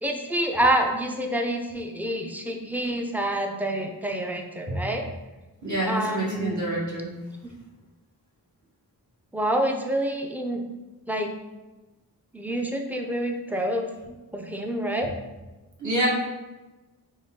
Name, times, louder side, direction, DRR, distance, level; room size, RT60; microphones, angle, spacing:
voice 1, 0.0-5.1 5.9-6.6 7.4-7.5 9.3-10.6 11.1-11.3 12.3-13.9 14.3-15.1, right 1 dB, 5° right, 3 dB, 0.5 m, -27 dB
voice 2, 5.6-7.1 15.8-16.1, right 1 dB, 50° right, -4 dB, 1.3 m, -27 dB
4.0 x 2.3 x 3.6 m, 1.1 s
cardioid pair, 50°, 39 cm